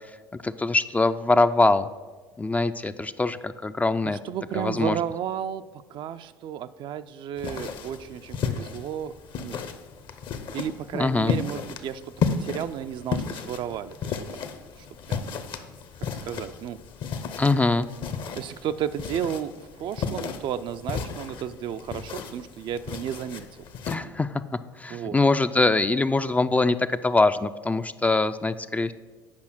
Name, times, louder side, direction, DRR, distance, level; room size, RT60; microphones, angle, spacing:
voice 1, 0.4-1.9 2.4-4.2 4.5-5.0 10.9-11.3 17.4-17.9 23.9-24.4 24.8-28.9, left 3 dB, 15° left, 11 dB, 0.4 m, -23 dB
voice 2, 4.0-5.6 5.9-9.6 10.5-12.0 12.4-14.2 14.8-15.3 16.2-16.8 18.4-23.5 24.9-25.2, right 9 dB, 50° right, 11 dB, 0.4 m, -33 dB
sound 1, 7.4-23.9, left 6 dB, 50° left, 0.8 m, -34 dB
8.6 x 5.5 x 6.0 m, 1.3 s
figure-of-eight pair, 60°, 11 cm